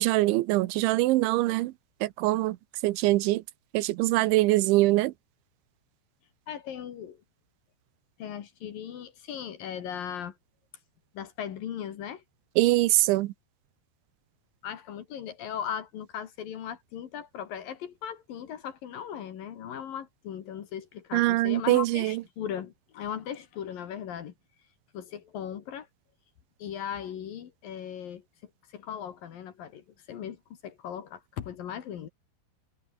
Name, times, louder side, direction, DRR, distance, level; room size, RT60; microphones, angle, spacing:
voice 1, 0.0-1.7 2.0-2.6 2.8-3.4 3.7-5.1 12.6-13.3 21.1-22.2, right 18 dB, 80° right, 3.2 m, -23 dB
voice 2, 6.5-7.2 8.2-10.4 11.1-12.2 14.6-24.3 24.9-25.9 26.6-28.2 28.7-32.1, left 9 dB, 60° left, 3.0 m, -38 dB
omnidirectional pair, 5.3 m